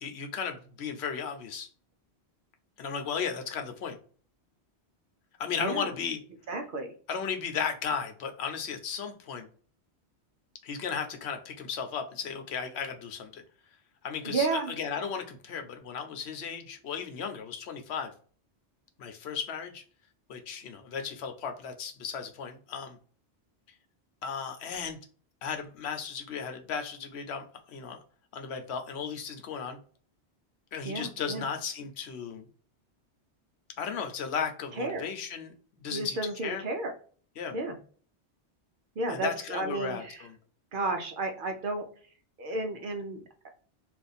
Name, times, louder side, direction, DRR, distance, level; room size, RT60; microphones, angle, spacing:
voice 1, 0.0-1.7 2.8-4.0 5.4-6.2 7.1-9.5 10.6-13.4 14.0-14.5 14.8-18.1 19.0-19.8 20.3-23.0 24.2-25.0 25.4-28.0 28.3-29.8 30.7-32.4 33.8-35.5 35.8-36.2 36.4-36.6 37.4-37.6 39.1-40.3, left 6 dB, 75° left, 5 dB, 0.9 m, -35 dB
voice 2, 5.5-5.9 6.5-6.9 14.2-14.7 30.8-31.4 34.8-35.1 35.9-36.9 37.5-37.8 39.0-40.3 40.7-41.8 42.4-43.2, right 3 dB, 55° right, 5 dB, 0.7 m, -32 dB
2.5 x 2.4 x 4.0 m, 0.44 s
omnidirectional pair, 1.1 m